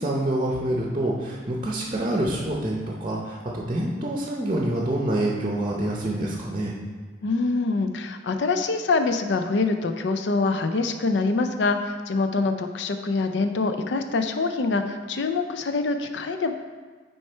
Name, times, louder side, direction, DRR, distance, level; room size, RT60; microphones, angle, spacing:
voice 1, 0.0-6.7, right 1 dB, 30° right, -2 dB, 0.7 m, -26 dB
voice 2, 7.2-16.5, left 3 dB, 70° left, 7 dB, 0.5 m, -25 dB
6.3 x 4.5 x 4.4 m, 1.4 s
head